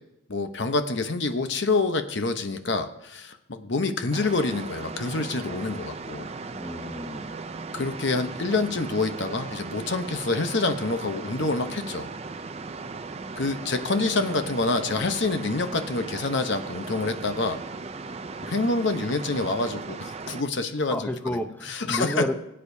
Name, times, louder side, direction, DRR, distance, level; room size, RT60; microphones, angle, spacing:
voice 1, 0.3-6.3 7.7-12.1 13.4-17.6 18.4-21.0 21.7-22.2, left 3 dB, 60° left, 7 dB, 0.9 m, -27 dB
sound 1, 4.1-20.4, right 4 dB, 30° right, 0.4 m, -37 dB
voice 2, 6.5-7.3 20.8-22.3, equal, 10° left, 5 dB, 0.7 m, -31 dB
21.5 x 8.7 x 2.7 m, 0.86 s
head